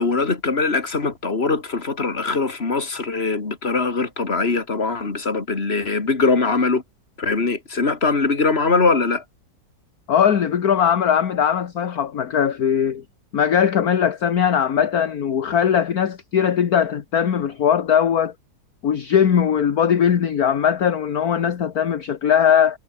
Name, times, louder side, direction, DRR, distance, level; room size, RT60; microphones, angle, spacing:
voice 1, 0.0-6.8 7.2-9.2, left 4 dB, 35° left, 2.9 m, -21 dB
voice 2, 10.1-13.0 13.3-18.3 18.8-22.8, left 8 dB, 55° left, 1.8 m, -19 dB
omnidirectional pair, 1.9 m